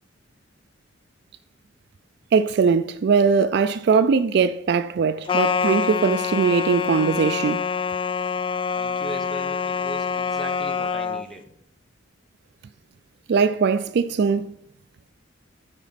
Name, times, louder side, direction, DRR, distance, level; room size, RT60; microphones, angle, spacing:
voice 1, 2.3-7.6 13.3-14.5, right 5 dB, 55° right, 0.3 m, -20 dB
sound 1, 5.3-11.3, left 6 dB, 25° left, 0.3 m, -25 dB
voice 2, 8.8-11.5, right 1 dB, ahead, 1.0 m, -38 dB
9.0 x 5.1 x 5.7 m
head